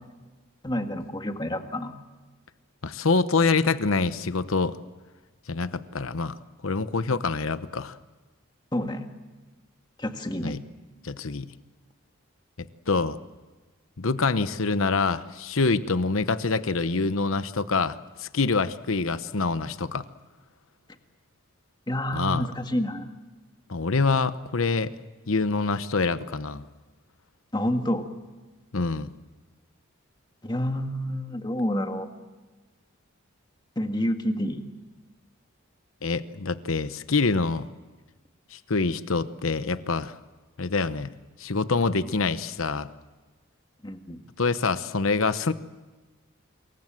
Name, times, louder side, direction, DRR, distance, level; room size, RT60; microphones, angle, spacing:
voice 1, 0.6-1.9 7.1-7.2 8.7-9.1 10.0-10.6 21.9-23.1 27.5-28.1 30.4-32.1 33.7-34.7 43.8-44.2, equal, 20° left, 6 dB, 1.8 m, -28 dB
voice 2, 2.8-4.8 5.5-6.4 6.6-8.0 10.4-10.6 11.0-11.5 12.9-13.2 14.0-20.0 22.1-22.5 23.7-24.9 25.3-26.6 28.7-29.1 36.0-37.7 38.5-40.2 40.6-41.1 41.4-42.9 44.4-45.5, left 4 dB, 70° left, 13 dB, 0.9 m, -25 dB
26.5 x 22.5 x 7.6 m, 1.3 s
head